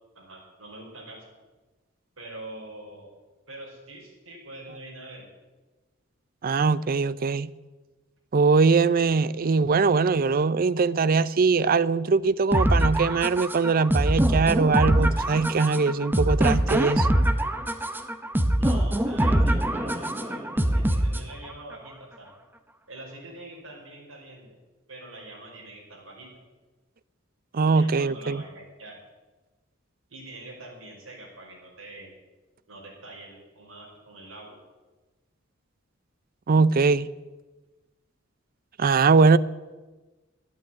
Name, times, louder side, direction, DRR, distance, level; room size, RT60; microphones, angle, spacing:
voice 1, 0.1-1.2 2.2-3.1 3.5-5.3 18.6-22.3 22.9-24.6 24.9-26.3 27.7-29.0 30.1-32.1 32.7-34.6, right 2 dB, 75° right, 5.0 m, -44 dB
voice 2, 6.4-7.5 8.3-17.1 27.5-28.4 36.5-37.1 38.8-39.4, right 4 dB, 45° right, 0.5 m, -21 dB
sound 1, 12.5-21.5, right 1 dB, 10° right, 0.9 m, -23 dB
13.0 x 9.2 x 9.2 m
head